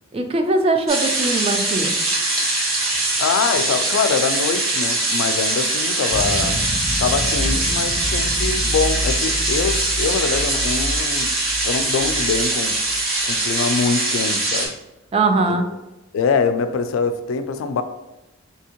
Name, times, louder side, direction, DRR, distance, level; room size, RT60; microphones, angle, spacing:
voice 1, 0.1-1.9 15.1-15.7, right 2 dB, 30° right, 5 dB, 0.4 m, -20 dB
sound 1, 0.9-14.7, right 2 dB, 85° right, 1.1 m, -22 dB
voice 2, 3.2-6.6 7.0-11.3 11.6-12.8 13.2-14.7 16.1-17.8, left 5 dB, 80° left, 10 dB, 0.3 m, -23 dB
sound 2, 6.1-13.2, left 1 dB, 20° left, 0.6 m, -28 dB
3.5 x 2.8 x 2.8 m, 0.97 s
head